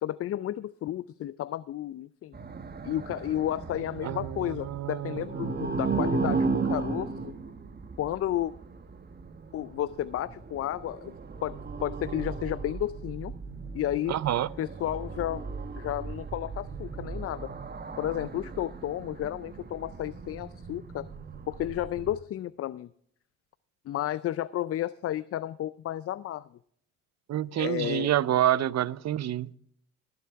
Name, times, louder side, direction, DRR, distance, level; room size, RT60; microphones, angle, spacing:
voice 1, 0.0-2.3 2.8-7.4 8.0-8.5 9.5-11.1 11.4-13.3 13.7-14.2 14.6-15.5 15.7-17.5 18.0-21.1 21.5-22.9 23.9-26.5 27.6-28.1, left 12 dB, 45° left, 0.4 m, -32 dB
sound 1, 2.3-22.2, right 4 dB, 30° right, 1.1 m, -36 dB
voice 2, 4.0-5.8 14.1-14.5 27.3-29.5, right 12 dB, 50° right, 0.6 m, -28 dB
21.0 x 7.8 x 3.5 m
supercardioid pair, 70°, 34 cm